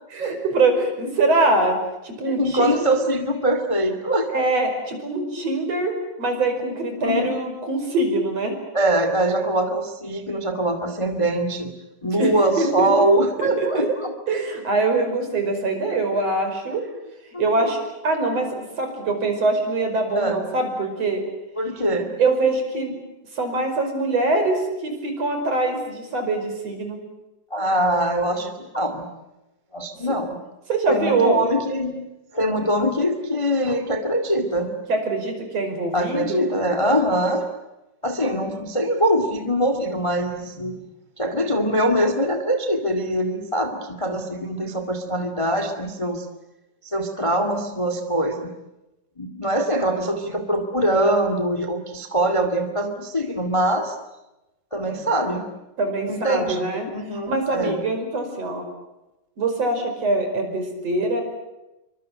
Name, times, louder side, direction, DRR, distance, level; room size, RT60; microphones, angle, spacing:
voice 1, 0.1-1.8 2.0-2.8 4.3-8.5 12.1-12.9 13.4-13.9 14.3-16.8 17.4-21.2 22.2-22.9 23.3-27.0 30.7-31.5 34.9-36.5 38.2-38.6 55.8-56.9 57.3-58.7 59.4-61.2, right 2 dB, 50° right, 5 dB, 6.3 m, -23 dB
voice 2, 2.2-4.3 7.0-7.3 8.7-11.7 12.0-14.1 17.3-17.7 20.1-20.4 21.6-22.1 27.5-29.1 29.7-30.4 30.9-32.0 32.3-34.7 35.9-37.4 38.0-40.8 41.2-46.2 46.8-48.5 49.2-53.9 54.7-55.5 56.1-57.8, right 1 dB, 10° left, 8 dB, 1.8 m, -23 dB
28.0 x 24.5 x 7.8 m, 0.97 s
omnidirectional pair, 3.6 m